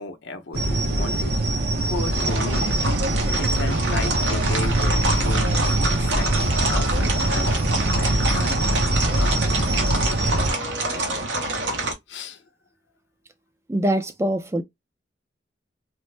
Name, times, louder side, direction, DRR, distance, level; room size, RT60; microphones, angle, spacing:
voice 1, 0.0-2.8 3.4-9.5 12.1-12.4, left 3 dB, 75° left, 0.7 m, -35 dB
sound 1, 0.5-10.5, right 1 dB, 55° right, 0.7 m, -23 dB
sound 2, 2.1-11.9, right 2 dB, 80° right, 1.1 m, -27 dB
voice 2, 13.7-14.6, right 1 dB, 15° right, 0.4 m, -23 dB
3.0 x 2.0 x 3.2 m
head